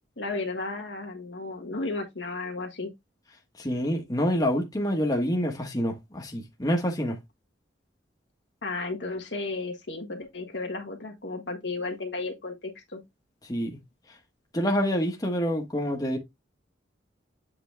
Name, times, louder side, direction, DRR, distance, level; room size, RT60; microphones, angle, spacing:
voice 1, 0.2-2.9 8.6-13.0, left 3 dB, 70° left, 1.5 m, -34 dB
voice 2, 3.6-7.2 13.4-13.8 14.5-16.2, equal, 20° left, 1.2 m, -27 dB
7.9 x 3.9 x 3.4 m
head